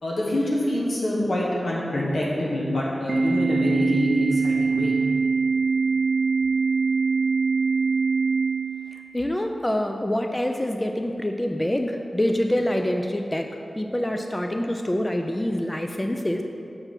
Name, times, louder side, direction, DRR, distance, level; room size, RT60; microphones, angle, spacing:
voice 1, 0.0-4.9, left 1 dB, 80° left, -5 dB, 1.3 m, -25 dB
Organ, 3.1-9.1, right 4 dB, 50° right, 0.4 m, -23 dB
voice 2, 8.9-13.5 13.7-16.4, left 1 dB, 15° left, 4 dB, 0.3 m, -26 dB
5.8 x 3.3 x 5.8 m, 2.7 s
wide cardioid pair, 55°, 0 cm